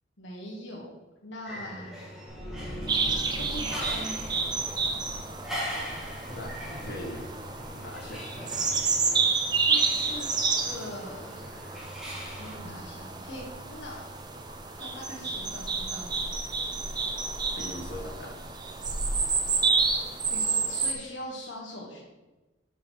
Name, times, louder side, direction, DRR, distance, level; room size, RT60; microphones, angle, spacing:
voice 1, 0.2-0.9 1.2-2.0 3.3-4.2 9.7-10.3 10.6-11.4 12.3-14.0 14.8-16.2 20.3-22.0, left 1 dB, 70° left, -4 dB, 1.2 m, -41 dB
sound 1, 1.4-12.6, equal, ahead, 1.3 m, -41 dB
sound 2, 2.3-7.4 7.6-7.9, equal, 50° right, 1.4 m, -42 dB
sound 3, 2.9-20.9, right 4 dB, 20° right, 0.4 m, -30 dB
voice 2, 6.2-7.3 7.7-8.3 17.6-18.3, left 1 dB, 50° left, -2 dB, 1.5 m, -40 dB
6.0 x 4.9 x 4.4 m, 1.1 s
head